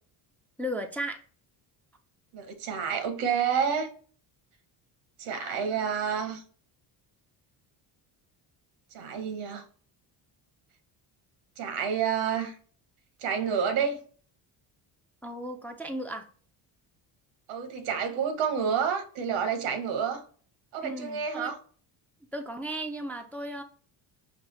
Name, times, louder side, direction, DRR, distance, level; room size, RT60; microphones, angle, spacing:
voice 1, 0.6-1.2 15.2-16.3 20.8-21.5 22.3-23.6, right 1 dB, 5° left, 0.4 m, -35 dB
voice 2, 2.3-3.9 5.2-6.4 8.9-9.6 11.6-12.6 13.2-14.0 17.5-20.2 20.7-21.6, right 7 dB, 85° right, 1.0 m, -29 dB
5.5 x 2.3 x 3.0 m
supercardioid pair, 75°, 50 cm